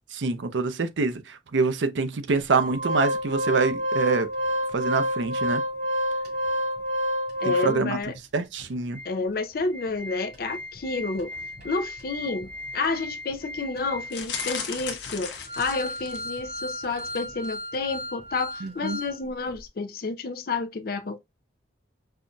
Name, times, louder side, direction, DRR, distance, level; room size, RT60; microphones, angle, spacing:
voice 1, 0.1-4.3 4.7-5.6 7.4-8.0 8.3-9.0 18.6-19.0, right 4 dB, 90° right, 0.6 m, -26 dB
Organ, 2.5-8.1 8.6-8.7 8.9-9.1 9.6-19.2 19.5-19.6, equal, 55° right, 2.9 m, -31 dB
voice 2, 7.4-8.2 9.0-11.3 11.6-21.2, left 3 dB, 55° left, 0.5 m, -30 dB
sound 1, 14.1-16.4 16.9-17.2 17.4-17.5, left 6 dB, 75° left, 0.9 m, -35 dB
5.5 x 2.6 x 2.2 m
head